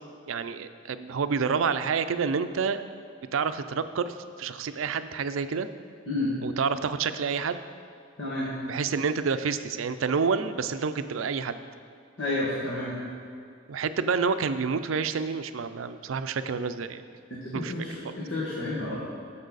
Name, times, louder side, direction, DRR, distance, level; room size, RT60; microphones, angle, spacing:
voice 1, 0.3-2.8 3.3-5.7 6.4-7.6 8.7-11.6 13.7-17.0 17.5-17.7 18.0-18.1, right 5 dB, 85° right, 11 dB, 0.4 m, -28 dB
voice 2, 8.2-8.5 12.2-12.9 17.3-19.0, left 2 dB, 65° left, -7 dB, 1.8 m, -30 dB
14.5 x 5.5 x 4.0 m, 2.4 s
head